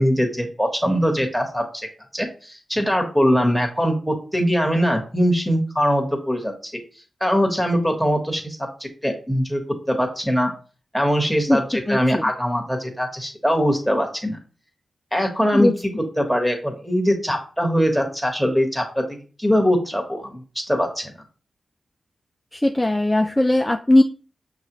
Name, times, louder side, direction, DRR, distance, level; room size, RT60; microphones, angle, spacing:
voice 1, 0.0-1.9 2.1-6.7 7.2-9.6 9.9-10.5 10.9-14.4 15.1-15.7 16.2-21.1, equal, ahead, 2 dB, 1.4 m, -22 dB
voice 2, 11.9-12.2 15.5-15.7 22.5-24.0, left 1 dB, 20° left, 5 dB, 0.4 m, -18 dB
5.9 x 2.4 x 3.1 m, 0.39 s
cardioid pair, 40°, 0 cm